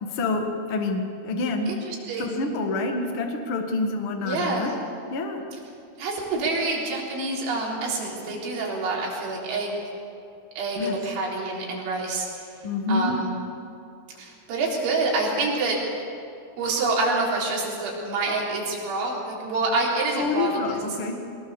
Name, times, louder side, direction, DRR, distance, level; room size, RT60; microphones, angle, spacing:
voice 1, 0.0-1.7 2.2-4.7 5.1-5.4 10.8-10.9 12.6-13.1 20.2-21.2, left 3 dB, 55° left, 4 dB, 1.5 m, -27 dB
voice 2, 1.7-2.4 4.2-4.7 6.0-9.8 10.6-12.5 12.9-13.3 14.2-15.8 16.6-20.8, right 3 dB, 85° right, -3 dB, 6.3 m, -27 dB
22.5 x 20.0 x 7.0 m, 2.6 s
omnidirectional pair, 5.3 m